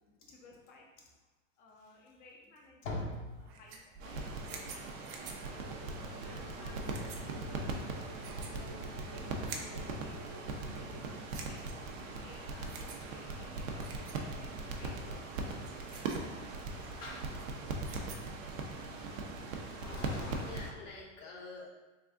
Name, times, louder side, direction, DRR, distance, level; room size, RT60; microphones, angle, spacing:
voice 1, 0.3-0.9 1.6-3.1 3.4-5.6 6.0-10.9 11.3-11.7 12.0-15.2 15.9-16.0, left 2 dB, 25° left, -1 dB, 0.5 m, -57 dB
voice 2, 2.8-3.3 11.1-11.3 17.0-17.4 19.7-21.7, left 2 dB, 70° left, -2 dB, 1.1 m, -43 dB
sound 1, 3.3-18.4, right 5 dB, 35° right, 0.5 m, -51 dB
sound 2, 4.0-20.7, right 3 dB, 85° right, 0.7 m, -40 dB
sound 3, 5.6-11.1, right 1 dB, 65° right, 1.0 m, -48 dB
3.5 x 2.5 x 3.5 m, 1.2 s
hypercardioid pair, 115°, 39 cm